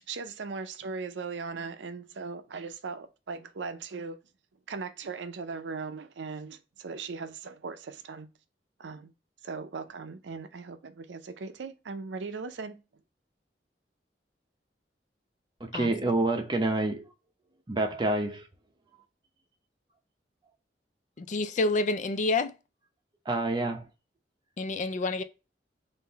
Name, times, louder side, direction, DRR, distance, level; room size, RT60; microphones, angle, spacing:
voice 1, 0.1-4.2 4.7-8.3 8.8-9.1 9.4-12.8, right 4 dB, 85° right, 0.5 m, -38 dB
voice 2, 15.6-17.1 17.7-18.4 23.3-23.9, right 2 dB, 25° right, 0.7 m, -27 dB
voice 3, 21.2-22.5 24.6-25.2, left 3 dB, 45° left, 0.4 m, -28 dB
3.8 x 2.6 x 4.0 m
head